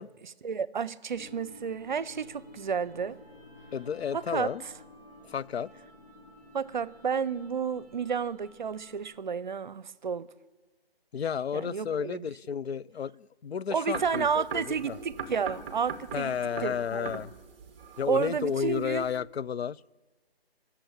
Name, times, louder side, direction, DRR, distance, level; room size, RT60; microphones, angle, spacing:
voice 1, 0.0-3.2 4.1-4.5 6.5-10.3 11.5-12.3 13.7-16.3 16.6-17.3 18.1-19.1, right 6 dB, 50° right, 0.6 m, -31 dB
sound 1, 1.1-9.3, left 1 dB, 15° left, 3.7 m, -53 dB
voice 2, 3.7-4.6 5.2-5.7 11.1-15.0 16.1-17.3 18.0-19.8, left 7 dB, 80° left, 0.5 m, -32 dB
sound 2, 13.9-19.2, right 5 dB, 10° right, 0.6 m, -41 dB
20.0 x 7.0 x 7.2 m
figure-of-eight pair, 155°, 31 cm